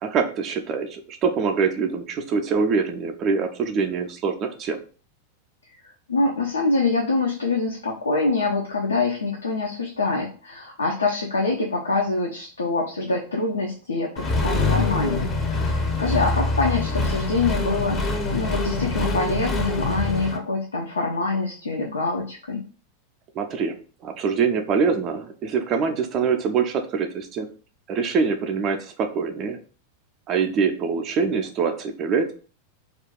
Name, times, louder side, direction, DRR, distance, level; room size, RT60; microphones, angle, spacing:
voice 1, 0.0-4.8 23.4-23.8 24.0-27.5 27.9-29.6 30.3-32.3, right 5 dB, 35° right, 5 dB, 0.4 m, -24 dB
voice 2, 6.1-22.6, left 3 dB, 75° left, -1 dB, 0.4 m, -25 dB
Accelerating revving vroom, 14.2-20.4, left 3 dB, 20° left, 0.5 m, -25 dB
2.4 x 2.2 x 3.5 m, 0.39 s
figure-of-eight pair, 90°, 0 cm